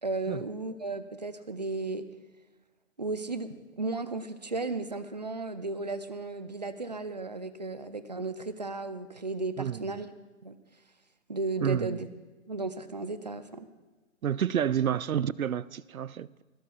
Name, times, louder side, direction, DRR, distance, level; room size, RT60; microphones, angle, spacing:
voice 1, 0.0-2.0 3.0-10.1 10.4-10.5 11.3-12.1 12.5-13.7, right 3 dB, 30° right, 0.5 m, -34 dB
voice 2, 11.6-12.0 14.2-16.4, right 9 dB, 90° right, 0.6 m, -29 dB
29.0 x 12.5 x 2.3 m
hypercardioid pair, 155°, 41 cm